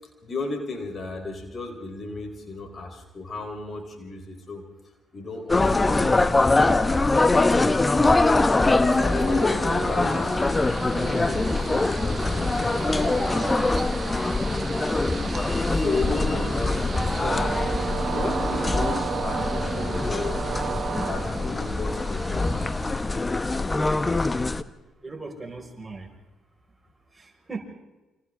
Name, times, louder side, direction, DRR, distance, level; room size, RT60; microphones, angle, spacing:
voice 1, 0.2-4.6 5.1-10.4 10.9-13.5 15.7-17.6 18.1-20.5 21.0-23.0 23.5-23.8, left 3 dB, 45° left, 3 dB, 4.3 m, -35 dB
sound 1, 5.5-24.6, left 2 dB, 25° left, 1.0 m, -23 dB
Train, 6.9-23.6, right 6 dB, 50° right, 0.9 m, -34 dB
voice 2, 24.8-26.1 27.1-27.6, right 3 dB, 20° right, 1 dB, 5.5 m, -38 dB
29.0 x 26.0 x 3.7 m, 1.1 s
hypercardioid pair, 50°, 0 cm